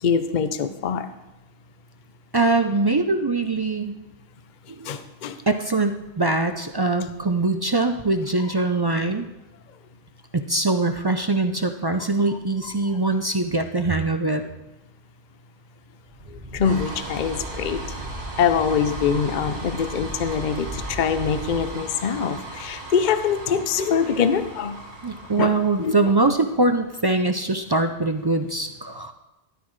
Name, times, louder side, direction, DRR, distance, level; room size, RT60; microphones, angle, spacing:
voice 1, 0.0-1.1 4.8-5.4 12.0-12.1 16.3-18.0 18.4-24.8 25.4-25.5 25.8-26.0, left 7 dB, 50° left, 10 dB, 0.7 m, -24 dB
voice 2, 2.3-4.0 4.8-4.9 5.5-9.3 10.3-14.4 25.0-29.1, right 2 dB, 40° right, 7 dB, 0.3 m, -22 dB
sound 1, 16.1-26.6, right 1 dB, 70° right, 2.4 m, -36 dB
14.0 x 12.0 x 3.2 m, 1.0 s
omnidirectional pair, 1.1 m